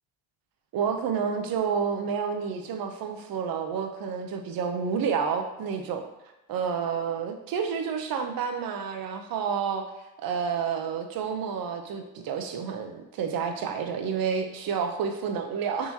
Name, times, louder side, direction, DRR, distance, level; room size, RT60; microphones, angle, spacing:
voice 1, 0.7-6.1 6.5-9.9 10.2-15.9, right 6 dB, 55° right, 5 dB, 0.6 m, -29 dB
3.6 x 2.9 x 2.7 m, 0.98 s
supercardioid pair, 75°, 41 cm